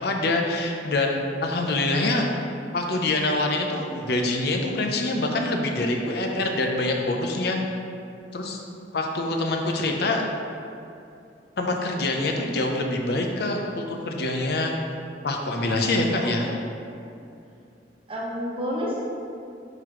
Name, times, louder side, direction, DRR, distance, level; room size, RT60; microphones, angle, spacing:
voice 1, 0.0-2.3 2.7-7.6 8.3-8.6 8.9-10.2 11.6-14.7 15.2-16.5, left 2 dB, 60° left, 2 dB, 0.6 m, -25 dB
voice 2, 16.2-17.2 18.1-19.0, equal, 30° right, -3 dB, 1.0 m, -31 dB
9.2 x 3.9 x 3.1 m, 2.5 s
head